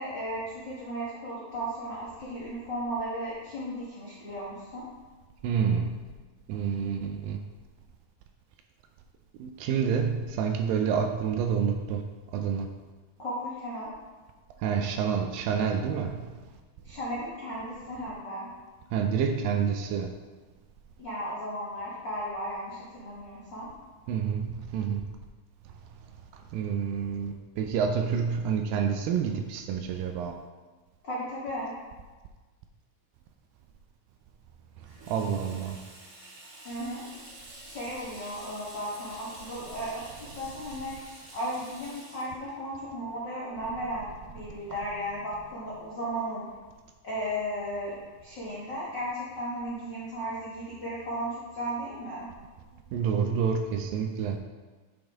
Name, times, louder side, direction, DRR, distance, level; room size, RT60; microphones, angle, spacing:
voice 1, 0.0-4.8 13.2-13.9 16.8-18.5 21.0-23.7 31.0-31.7 36.6-37.0 37.6-46.5 47.0-47.9 48.2-52.3, equal, 80° left, -7 dB, 1.0 m, -35 dB
voice 2, 5.4-5.9 6.5-7.4 9.4-12.0 12.3-12.7 14.6-16.2 18.9-20.1 24.1-25.0 26.5-30.4 35.1-35.8 52.9-54.4, right 7 dB, 80° right, 5 dB, 2.1 m, -28 dB
Water tap faucet / Sink (filling or washing), 34.8-44.1, right 1 dB, 55° right, 1.3 m, -49 dB
9.2 x 5.3 x 3.5 m, 1.3 s
omnidirectional pair, 4.3 m